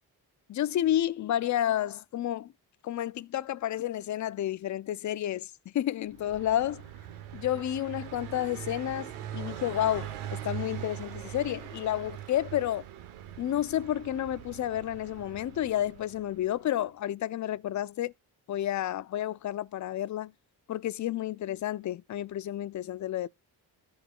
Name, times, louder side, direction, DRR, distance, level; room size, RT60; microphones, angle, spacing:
voice 1, 0.5-2.5 2.8-6.8 7.3-12.8 13.4-18.1 18.5-20.3 20.7-23.3, left 12 dB, 40° left, 0.5 m, -31 dB
Car passing by, 6.1-16.7, right 11 dB, 80° right, 1.1 m, -42 dB
13.5 x 4.6 x 2.3 m
hypercardioid pair, 45°, 49 cm